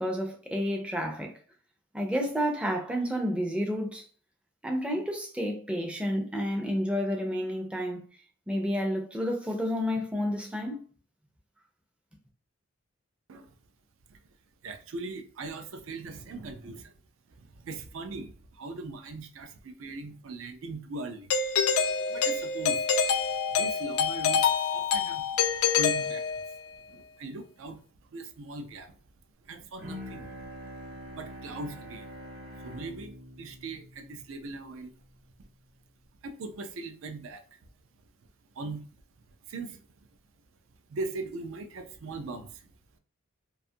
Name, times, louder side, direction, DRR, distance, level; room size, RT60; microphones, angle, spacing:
voice 1, 0.0-1.3 1.9-4.0 4.6-8.0 8.5-10.8, equal, 5° right, 0.4 m, -30 dB
voice 2, 14.6-16.9 17.3-21.3 22.1-22.9 23.5-25.3 25.8-26.4 26.9-27.8 28.1-28.9 29.4-30.4 31.1-32.1 32.6-34.9 36.2-37.4 38.5-38.9 39.5-39.8 40.9-42.7, right 2 dB, 65° right, 0.4 m, -40 dB
Doorbell, 21.3-26.7, left 6 dB, 85° left, 0.4 m, -26 dB
Bowed string instrument, 29.8-35.2, equal, 45° right, 0.8 m, -45 dB
2.5 x 2.3 x 2.6 m
head